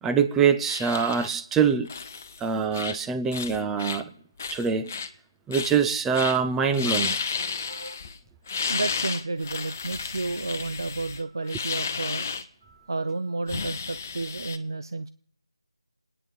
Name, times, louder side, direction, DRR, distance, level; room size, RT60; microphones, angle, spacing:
voice 1, 0.0-1.9 2.4-4.1 4.5-4.9 5.5-7.2, right 6 dB, 5° right, 0.5 m, -24 dB
sound 1, 0.7-1.3 1.9-2.4 2.7-3.0 3.3-4.0 4.4-5.1 5.5-5.8 6.1-6.4 6.7-8.2 8.5-12.4 13.5-14.6, left 5 dB, 25° left, 0.8 m, -32 dB
voice 2, 7.7-8.1 8.5-12.3 12.6-15.1, right 3 dB, 55° right, 0.7 m, -32 dB
27.5 x 10.0 x 4.6 m
figure-of-eight pair, 160°, 3 cm